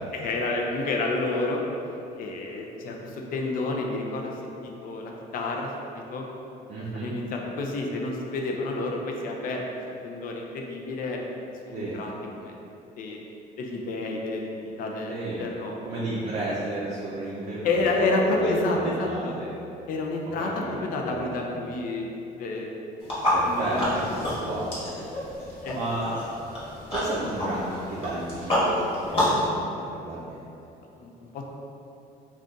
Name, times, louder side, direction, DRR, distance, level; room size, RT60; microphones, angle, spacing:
voice 1, 0.1-1.6 2.2-6.3 6.9-9.6 10.0-11.2 11.6-12.6 13.0-13.2 13.6-15.7 17.6-19.3 19.9-22.1 22.4-22.7 23.4-24.4 25.6-25.8 30.9-31.5, left 2 dB, 55° left, 0 dB, 0.4 m, -29 dB
voice 2, 6.7-7.1 11.7-12.0 15.1-15.5 15.8-19.5 20.4-20.8 21.1-21.5 23.3-24.8 25.7-26.2 26.9-30.4, right 2 dB, 40° right, -6 dB, 0.5 m, -33 dB
sound 1, 23.0-29.5, left 1 dB, 35° left, 1.1 m, -28 dB
2.5 x 2.3 x 3.7 m, 2.8 s
cardioid pair, 110°, 17 cm